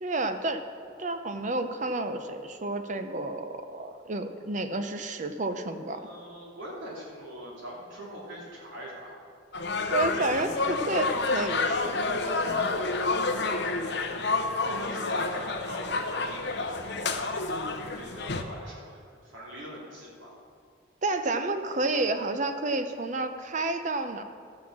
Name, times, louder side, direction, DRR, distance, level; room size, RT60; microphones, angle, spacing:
voice 1, 0.0-0.6 1.0-6.0 9.9-12.0 12.5-12.7 21.0-24.2, right 2 dB, 40° right, 8 dB, 0.6 m, -30 dB
voice 2, 5.9-9.2 10.2-10.4 12.7-12.9 14.7-17.5 17.8-20.3, equal, 85° right, -5 dB, 2.9 m, -42 dB
sound 1, 9.5-18.4, left 3 dB, 60° left, 0.8 m, -29 dB
13.0 x 6.1 x 7.4 m, 2.2 s
head